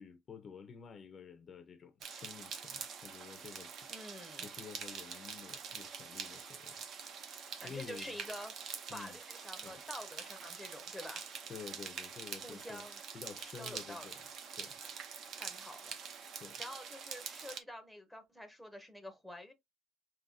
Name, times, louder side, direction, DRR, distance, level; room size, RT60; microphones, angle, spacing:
voice 1, 0.0-3.7 4.4-7.3 7.5-8.2 8.9-9.2 9.6-9.8 11.5-12.8 13.1-14.2 14.6-14.8 16.4-16.6, left 6 dB, 30° left, 0.6 m, -50 dB
sound 1, 2.0-17.6, right 6 dB, 45° right, 0.7 m, -45 dB
voice 2, 3.9-4.5 7.6-8.5 8.9-11.2 12.4-13.0 13.6-14.1 15.3-16.3 16.6-19.5, left 1 dB, ahead, 0.7 m, -48 dB
5.4 x 2.7 x 2.6 m
cardioid pair, 170°, 0 cm